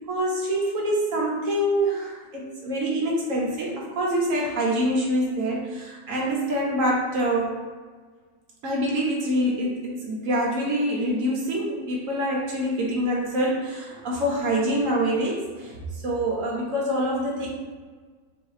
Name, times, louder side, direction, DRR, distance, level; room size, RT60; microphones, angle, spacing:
voice 1, 0.0-7.5 8.6-17.5, equal, 55° right, -3 dB, 1.0 m, -25 dB
3.9 x 2.7 x 3.1 m, 1.5 s
omnidirectional pair, 1.9 m